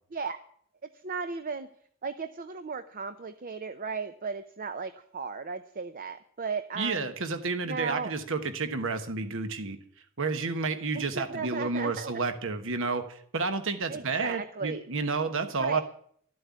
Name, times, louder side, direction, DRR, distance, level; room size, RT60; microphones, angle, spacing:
voice 1, 1.0-1.7 2.0-7.1 7.7-8.1 10.9-12.1 13.9-14.8 15.6-15.8, right 5 dB, 40° right, 10 dB, 0.6 m, -35 dB
voice 2, 6.8-9.8 10.2-15.8, right 4 dB, 60° right, 9 dB, 1.3 m, -30 dB
13.0 x 7.8 x 9.5 m, 0.63 s
head